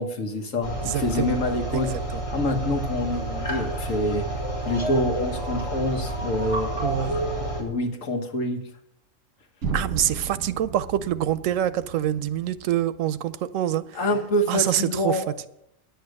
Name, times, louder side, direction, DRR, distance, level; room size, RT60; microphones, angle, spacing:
voice 1, 0.0-1.9 2.3-4.3 4.7-6.7 7.6-8.6 14.0-15.3, left 1 dB, 80° left, 1.7 m, -26 dB
sound 1, 0.6-7.6, right 2 dB, 25° left, 3.2 m, -30 dB
voice 2, 0.8-1.4 1.7-2.2 6.8-7.2 9.7-13.8 14.5-15.5, right 11 dB, 90° right, 1.0 m, -26 dB
sound 2, 9.6-13.6, right 5 dB, 70° right, 1.5 m, -35 dB
10.5 x 8.0 x 6.5 m
omnidirectional pair, 1.3 m